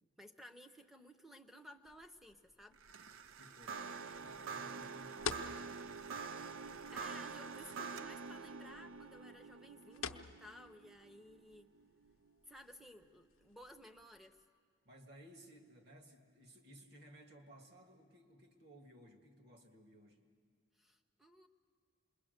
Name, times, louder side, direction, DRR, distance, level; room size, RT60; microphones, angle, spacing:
voice 1, 0.2-2.8 6.6-11.7 12.5-14.4 20.8-21.5, equal, ahead, 8 dB, 0.7 m, -57 dB
sound 1, 1.8-14.5, left 6 dB, 80° left, 0.7 m, -51 dB
sound 2, 2.8-12.1, right 5 dB, 80° right, 0.5 m, -47 dB
voice 2, 3.4-3.9 4.2-6.1 14.9-20.2, right 1 dB, 50° right, 3 dB, 1.7 m, -59 dB
27.0 x 21.5 x 6.6 m, 2.1 s
head